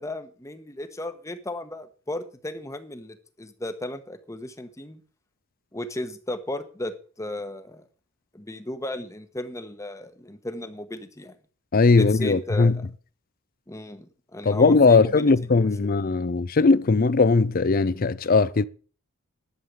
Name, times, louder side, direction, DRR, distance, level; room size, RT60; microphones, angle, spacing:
voice 1, 0.0-5.0 5.7-7.8 8.3-11.4 11.9-12.9 13.7-15.9, left 1 dB, 15° left, 1.1 m, -35 dB
voice 2, 11.7-12.8 14.5-18.6, left 4 dB, 40° left, 0.5 m, -19 dB
11.0 x 7.4 x 6.5 m
head